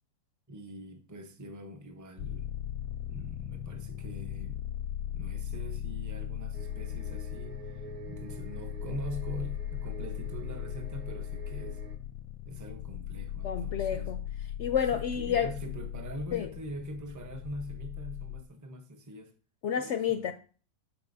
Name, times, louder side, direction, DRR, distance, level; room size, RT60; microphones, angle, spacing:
voice 1, 0.5-2.5 3.1-4.6 5.1-11.8 12.4-14.1 14.9-19.3 19.8-20.3, equal, 15° right, 0.6 m, -43 dB
sound 1, 2.2-18.4, left 10 dB, 90° left, 1.1 m, -38 dB
sound 2, 6.5-12.0, right 7 dB, 85° right, 1.6 m, -48 dB
voice 2, 13.4-14.2 14.6-15.5 16.3-16.5 19.6-20.3, left 8 dB, 65° left, 0.7 m, -29 dB
13.0 x 4.6 x 2.6 m
omnidirectional pair, 1.5 m